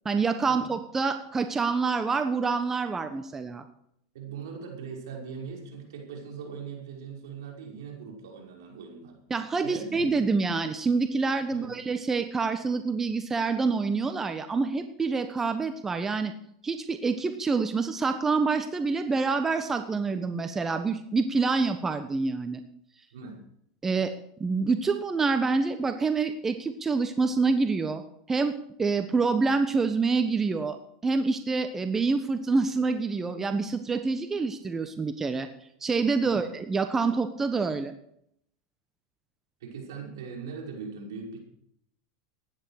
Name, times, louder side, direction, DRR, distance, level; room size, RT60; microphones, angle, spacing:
voice 1, 0.0-3.6 9.3-16.3 16.6-22.6 23.8-24.1 24.4-28.0 28.3-30.8 31.0-35.5 35.8-37.9, right 4 dB, 15° right, 9 dB, 1.2 m, -27 dB
voice 2, 4.1-9.2 9.6-10.1 11.5-11.8 23.1-23.4 36.2-36.4 39.6-41.4, right 5 dB, 75° right, 0 dB, 5.8 m, -40 dB
15.5 x 10.5 x 6.6 m, 0.71 s
hypercardioid pair, 105°, 2 cm